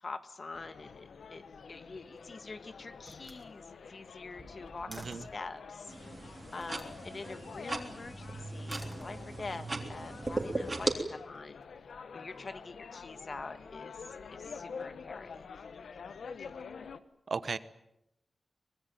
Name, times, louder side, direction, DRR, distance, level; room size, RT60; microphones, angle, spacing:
voice 1, 0.0-5.9 6.5-11.6 12.1-14.0 14.3-15.5 16.4-16.5, left 3 dB, 50° left, 11 dB, 1.7 m, -45 dB
sound 1, 0.5-17.0, left 5 dB, 90° left, 1.2 m, -47 dB
Slam, 1.9-2.5 3.0-5.5 6.5-7.0 8.5-9.6, equal, 5° right, 4.7 m, -52 dB
voice 2, 4.9-5.2 17.3-17.6, right 4 dB, 60° right, 14 dB, 1.2 m, -35 dB
sound 2, 5.9-10.9, right 2 dB, 35° right, 3.6 m, -38 dB
24.5 x 21.0 x 9.1 m, 0.84 s
wide cardioid pair, 90°, 0 cm